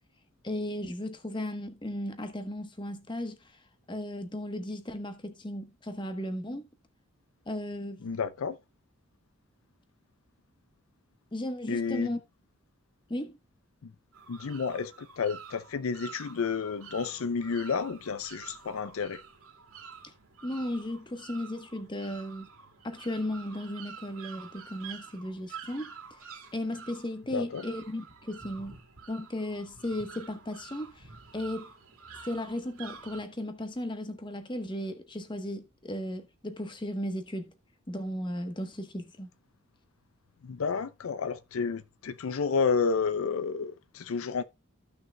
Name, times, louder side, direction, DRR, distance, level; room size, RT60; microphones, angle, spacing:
voice 1, 0.4-3.4 3.9-6.7 7.5-8.1 11.3-12.2 13.1-13.4 20.0-20.1 20.4-22.5 22.8-25.9 26.5-28.8 29.1-31.1 31.3-31.7 32.2-37.5 37.9-39.3, left 1 dB, 20° left, 1.0 m, -35 dB
voice 2, 8.0-8.6 11.7-12.1 13.8-13.9 14.3-19.2 27.3-27.6 40.4-44.4, left 5 dB, 75° left, 0.5 m, -31 dB
sound 1, 14.1-33.2, right 6 dB, 90° right, 2.3 m, -48 dB
15.0 x 6.0 x 2.2 m
head